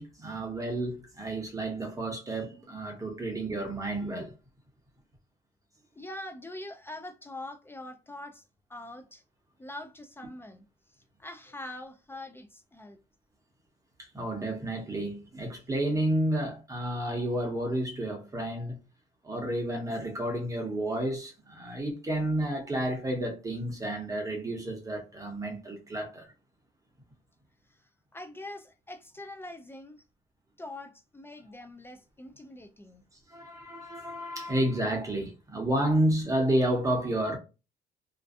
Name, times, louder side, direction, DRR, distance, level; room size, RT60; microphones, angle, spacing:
voice 1, 0.0-4.3 14.0-18.8 19.2-26.3 33.3-37.4, right 1 dB, 20° right, 0.8 m, -31 dB
voice 2, 6.0-9.2 9.6-10.6 11.2-13.0 27.7-30.0 30.6-33.0, left 1 dB, 15° left, 0.3 m, -44 dB
2.5 x 2.2 x 2.6 m
cardioid pair, 110°, 17 cm